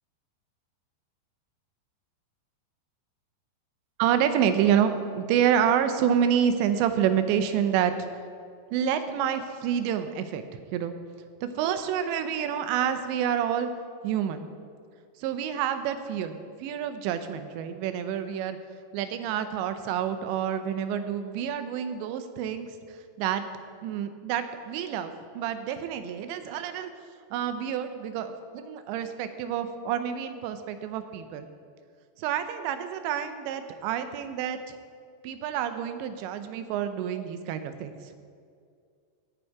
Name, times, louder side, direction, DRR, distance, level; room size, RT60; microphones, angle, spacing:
voice 1, 4.0-4.9 5.2-7.9 8.7-10.9 11.4-13.7 14.0-14.5 15.2-18.6 18.9-22.8 23.2-23.4 23.8-26.9 27.3-31.5 32.2-34.6 35.2-37.9, right 9 dB, 85° right, 9 dB, 3.0 m, -28 dB
17.0 x 6.3 x 4.7 m, 2.2 s
omnidirectional pair, 5.0 m